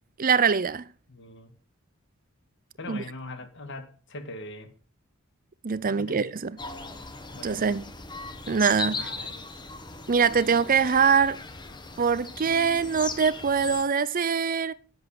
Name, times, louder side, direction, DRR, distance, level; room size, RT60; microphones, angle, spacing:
voice 1, 0.2-0.9 2.9-3.0 5.6-6.6 7.4-7.9 8.5-9.1 10.1-11.4 12.0-14.7, right 6 dB, 40° right, 0.6 m, -23 dB
voice 2, 1.1-1.5 2.8-4.7 5.8-6.3 7.3-7.7 8.8-9.5, left 2 dB, 60° left, 2.1 m, -41 dB
sound 1, 6.6-13.8, left 3 dB, 20° left, 1.4 m, -38 dB
11.0 x 8.0 x 6.6 m
head